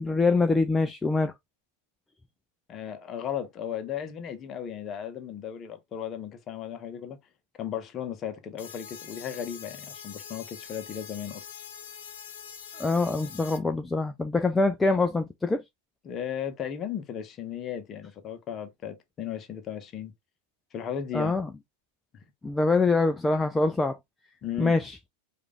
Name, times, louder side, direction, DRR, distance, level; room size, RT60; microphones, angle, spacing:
voice 1, 0.0-1.3 12.8-15.6 21.1-21.5 22.4-24.0 24.6-25.0, left 3 dB, 10° left, 0.4 m, -24 dB
voice 2, 2.7-7.2 7.6-11.4 16.0-20.1 20.7-21.3 24.4-24.8, left 9 dB, 30° left, 0.8 m, -35 dB
sound 1, 8.6-13.6, left 7 dB, 60° left, 0.9 m, -44 dB
4.9 x 2.5 x 3.2 m
figure-of-eight pair, 90°, 0 cm